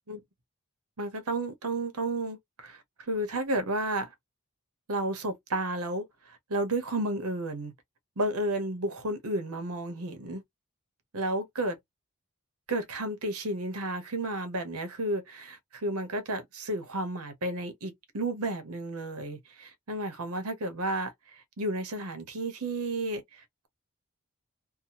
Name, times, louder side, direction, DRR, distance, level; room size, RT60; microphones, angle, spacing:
voice 1, 1.0-4.1 4.9-7.7 8.2-10.4 11.1-11.8 12.7-21.1 21.6-23.7, right 1 dB, 80° right, 0.9 m, -32 dB
2.8 x 2.2 x 2.8 m
head